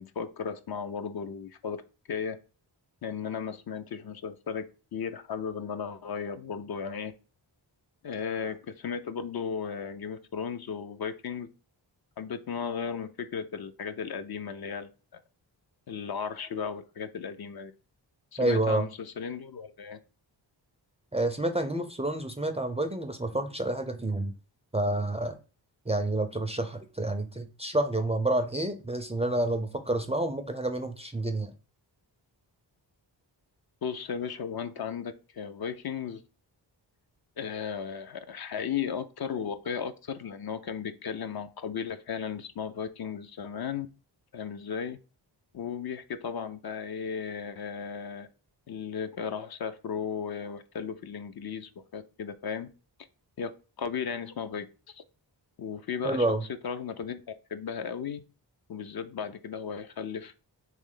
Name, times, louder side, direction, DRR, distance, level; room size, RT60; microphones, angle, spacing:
voice 1, 0.0-1.8 2.1-2.4 3.0-4.6 4.9-7.1 8.0-11.5 12.2-15.2 15.9-17.7 18.3-20.0 33.8-36.2 37.4-43.9 44.3-45.0 45.5-48.3 48.7-52.7 53.4-53.5 53.8-55.0 55.6-56.3 56.6-57.2 57.5-58.2 58.7-60.3, left 7 dB, 55° left, 10 dB, 0.5 m, -35 dB
voice 2, 18.4-18.9 21.1-24.3 24.7-25.4 25.9-31.5 56.0-56.4, right 2 dB, 15° right, 7 dB, 0.3 m, -29 dB
3.2 x 3.2 x 3.7 m, 0.34 s
wide cardioid pair, 80°, 45 cm